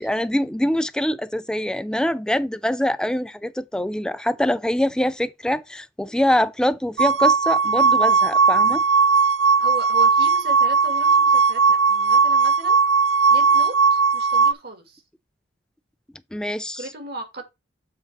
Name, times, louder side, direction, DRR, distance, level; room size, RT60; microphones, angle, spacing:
voice 1, 0.0-8.8 16.3-16.8, left 1 dB, 5° left, 0.4 m, -24 dB
sound 1, 7.0-14.5, right 5 dB, 80° right, 0.5 m, -17 dB
voice 2, 9.6-12.8 13.3-15.0 16.7-17.4, right 2 dB, 55° right, 2.3 m, -36 dB
7.3 x 3.8 x 6.0 m
head